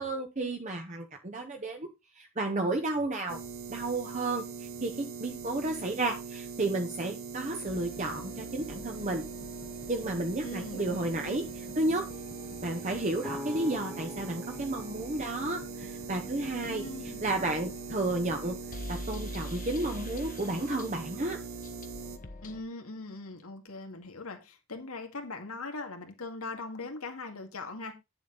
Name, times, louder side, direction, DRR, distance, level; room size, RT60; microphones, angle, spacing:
voice 1, 0.0-1.9 2.2-3.4 3.7-9.2 9.9-12.1 12.6-16.8 17.2-18.5 18.9-21.4, right 2 dB, 35° right, 1.0 m, -32 dB
sound 1, 3.3-22.2, right 5 dB, 65° right, 1.1 m, -42 dB
sound 2, 7.7-22.6, left 1 dB, 40° left, 1.0 m, -46 dB
voice 2, 10.4-11.4 16.6-17.2 22.4-27.9, left 3 dB, 90° left, 2.1 m, -41 dB
sound 3, 13.2-17.0, left 1 dB, ahead, 1.6 m, -45 dB
9.7 x 7.1 x 3.9 m
head